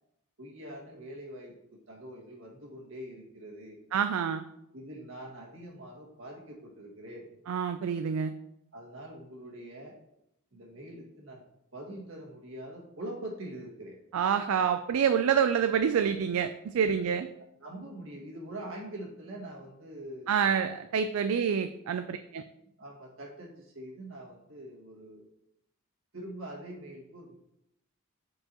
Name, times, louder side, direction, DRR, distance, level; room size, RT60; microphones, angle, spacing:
voice 1, 0.4-3.8 4.7-7.3 8.7-10.0 10.5-11.4 11.7-14.0 16.8-17.1 17.6-20.6 22.8-25.3 26.1-27.3, right 1 dB, 70° right, -2 dB, 1.9 m, -44 dB
voice 2, 3.9-4.4 7.5-8.3 14.1-17.3 20.3-22.4, right 7 dB, 90° right, 9 dB, 0.3 m, -27 dB
7.6 x 4.7 x 2.9 m, 0.80 s
head